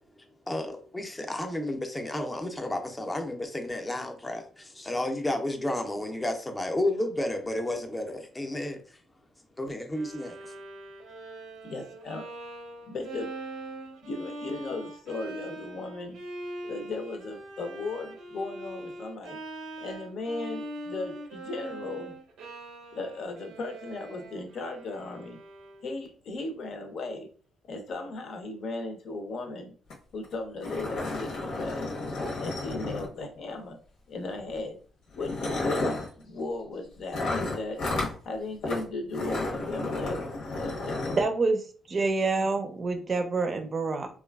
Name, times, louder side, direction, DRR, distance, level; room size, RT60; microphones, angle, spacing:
voice 1, 0.5-9.0 9.6-10.5, left 1 dB, 15° left, 5 dB, 0.5 m, -32 dB
Bowed string instrument, 9.9-26.0, right 1 dB, 85° right, 0.5 m, -42 dB
voice 2, 11.6-12.3 12.9-13.3 14.1-16.2 16.6-19.4 19.8-22.1 22.9-25.4 25.8-27.3 27.7-29.7 30.1-31.8 32.3-33.8 34.1-34.8 35.1-35.3 35.6-37.8 38.2-40.2 40.6-41.2, left 3 dB, 65° left, 4 dB, 0.6 m, -36 dB
sound 1, 29.9-30.0 30.2-30.3 30.6-33.4 34.4-34.6 35.1-36.1 37.1-38.1 38.6-38.8 39.1-41.2, left 2 dB, 85° left, 0.9 m, -32 dB
voice 3, 41.2-41.6 41.9-44.1, right 3 dB, 40° right, 7 dB, 0.5 m, -27 dB
3.0 x 2.3 x 2.3 m, 0.41 s
cardioid pair, 90°, 0 cm